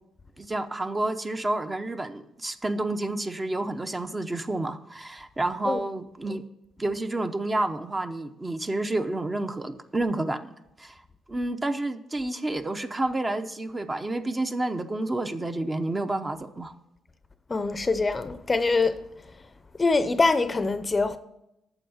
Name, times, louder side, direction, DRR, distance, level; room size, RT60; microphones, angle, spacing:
voice 1, 0.4-6.4 6.8-10.4 10.8-11.0 11.3-16.7, right 2 dB, 20° right, 0.7 m, -29 dB
voice 2, 17.5-19.0 19.8-21.2, left 3 dB, 25° left, 0.6 m, -24 dB
9.0 x 6.9 x 7.2 m
cardioid pair, 90°, 0 cm